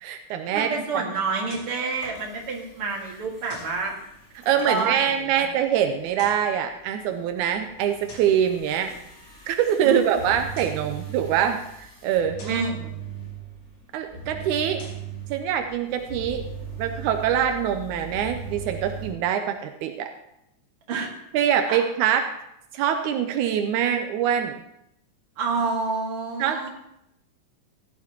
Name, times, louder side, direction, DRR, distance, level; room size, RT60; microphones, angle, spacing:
voice 1, 0.0-0.7 0.9-1.0 4.4-8.9 9.5-12.6 13.9-14.8 15.3-16.4 16.8-20.1 21.3-22.3 22.7-24.6 26.4-26.7, right 9 dB, 85° right, 6 dB, 2.1 m, -24 dB
voice 2, 0.5-4.0 4.7-5.4 9.8-10.0 12.4-12.9 20.9-21.1 21.7-21.8 25.4-26.7, right 4 dB, 50° right, -1 dB, 2.7 m, -28 dB
sound 1, 1.5-1.8 3.5-3.8 6.0-6.5 8.1-8.4 10.4-10.9 12.4-12.7 14.6-15.1, left 2 dB, 80° left, 4.3 m, -46 dB
sound 2, 1.9-19.1, right 5 dB, 30° left, 3.4 m, -40 dB
16.0 x 11.0 x 2.9 m, 0.81 s
omnidirectional pair, 3.5 m